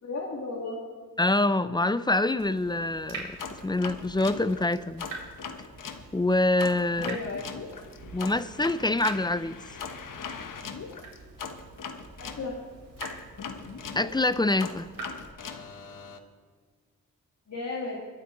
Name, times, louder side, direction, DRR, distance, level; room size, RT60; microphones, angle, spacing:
voice 1, 0.0-0.8 7.0-7.5 12.2-12.6 17.5-18.0, left 3 dB, 50° left, -4 dB, 2.3 m, -34 dB
voice 2, 1.2-5.0 6.1-7.2 8.1-9.6 14.0-14.9, left 2 dB, 15° left, 15 dB, 0.4 m, -25 dB
Water tap faucet / Drip, 2.4-15.3, right 3 dB, 75° right, 3.5 m, -46 dB
sound 1, 3.4-6.0 6.6-12.4 13.0-16.2, left 6 dB, 65° left, 1.1 m, -40 dB
23.0 x 8.4 x 3.9 m, 1.5 s
cardioid pair, 80°, 34 cm